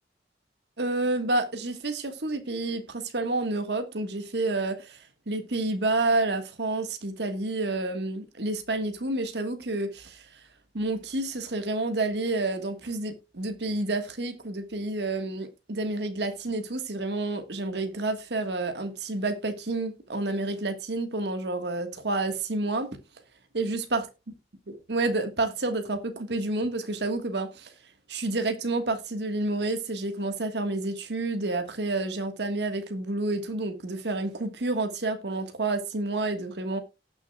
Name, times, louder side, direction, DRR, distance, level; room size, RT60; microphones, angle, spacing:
voice 1, 0.8-10.4 10.7-23.0 23.5-24.0 24.7-27.7 28.1-36.8, right 2 dB, 70° right, 1.5 m, -29 dB
18.5 x 6.4 x 2.3 m
head